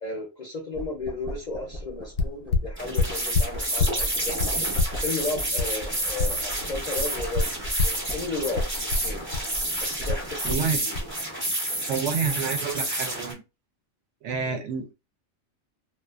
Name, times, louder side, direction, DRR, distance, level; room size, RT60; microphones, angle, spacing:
voice 1, 0.0-4.3 5.0-9.2 9.8-11.0 14.4-14.6, left 3 dB, 50° left, 0.5 m, -34 dB
sound 1, 0.7-10.8, equal, 35° right, 0.9 m, -39 dB
sound 2, 1.9-2.0 2.2-4.0 4.4-6.6 7.0-8.1 8.5-9.5 10.1-10.7 10.9-11.1, left 3 dB, 80° left, 1.0 m, -26 dB
sound 3, 2.8-13.3, right 1 dB, 20° right, 0.3 m, -30 dB
voice 2, 10.4-10.8 11.9-13.4 14.2-14.9, right 6 dB, 70° right, 0.8 m, -28 dB
2.4 x 2.4 x 2.3 m
omnidirectional pair, 1.4 m